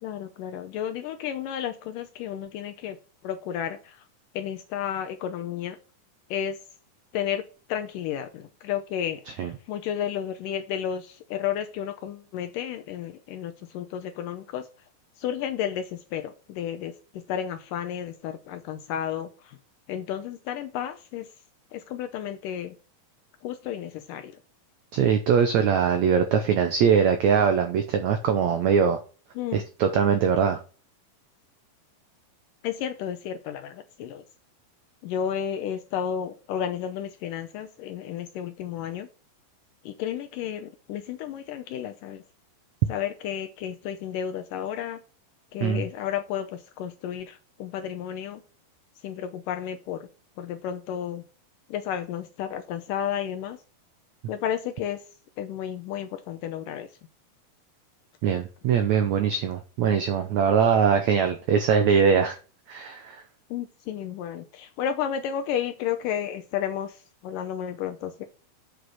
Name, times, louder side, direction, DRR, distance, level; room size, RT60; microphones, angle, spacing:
voice 1, 0.0-3.0 3.2-4.0 4.3-5.8 6.3-6.6 7.1-7.4 7.7-14.7 15.2-19.6 19.9-21.3 21.7-22.8 23.4-24.4 29.4-29.6 32.6-34.2 35.0-39.1 39.9-42.2 42.9-45.0 45.5-48.4 49.0-50.1 50.4-51.2 51.7-53.6 54.3-55.0 55.4-56.9 63.5-68.3, left 9 dB, 80° left, 2.0 m, -32 dB
voice 2, 24.9-29.0 29.5-30.6 45.6-45.8 58.2-62.4 62.7-63.2, right 7 dB, 80° right, 1.6 m, -22 dB
7.8 x 5.1 x 6.2 m
omnidirectional pair, 4.4 m